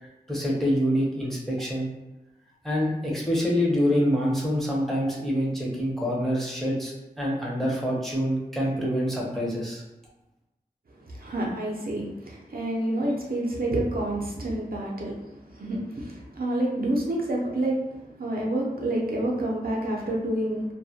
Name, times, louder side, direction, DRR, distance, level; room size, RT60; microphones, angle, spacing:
voice 1, 0.3-1.9 2.6-9.8, equal, ahead, -4 dB, 0.6 m, -26 dB
voice 2, 11.1-17.9 18.1-20.6, right 1 dB, 70° right, -3 dB, 0.5 m, -28 dB
2.2 x 2.0 x 2.7 m, 1.0 s
wide cardioid pair, 70°, 16 cm